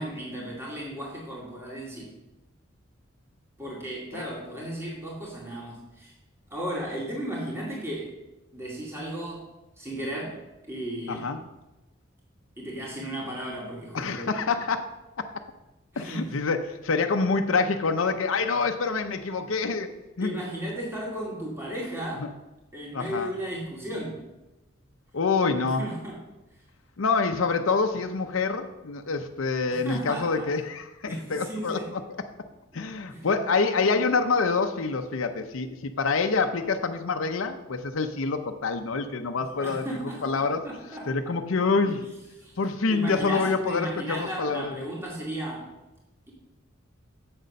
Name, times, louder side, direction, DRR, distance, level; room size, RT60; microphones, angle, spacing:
voice 1, 0.0-2.1 3.6-6.1 6.5-8.1 8.5-9.5 9.8-10.4 10.7-11.4 12.6-14.3 15.9-16.4 20.2-22.3 22.7-24.2 25.6-26.2 29.7-30.5 31.1-31.9 33.1-33.3 39.5-41.4 42.4-42.5 42.9-45.7, right 1 dB, 15° right, -4 dB, 2.3 m, -35 dB
voice 2, 11.1-11.4 13.9-14.8 16.0-19.9 20.2-20.4 22.2-22.3 22.9-23.3 25.1-25.9 27.0-32.0 32.7-39.9 40.2-40.7 41.1-42.0 42.6-44.7, left 4 dB, 85° left, 5 dB, 0.7 m, -26 dB
7.8 x 6.6 x 6.5 m, 1.0 s
head